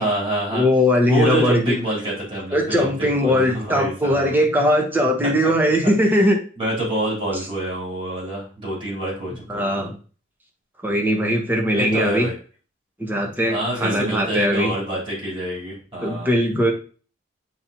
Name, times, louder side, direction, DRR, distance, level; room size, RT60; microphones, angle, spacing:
voice 1, 0.0-0.6 1.1-4.4 6.1-6.2 6.6-9.9 11.7-12.3 13.5-16.3, right 1 dB, 25° right, -6 dB, 3.6 m, -26 dB
voice 2, 0.5-1.8 2.5-6.4 9.5-10.0 10.8-12.3 13.0-14.7 16.0-16.7, equal, 10° right, 1 dB, 1.0 m, -20 dB
8.6 x 4.0 x 2.9 m, 0.38 s
head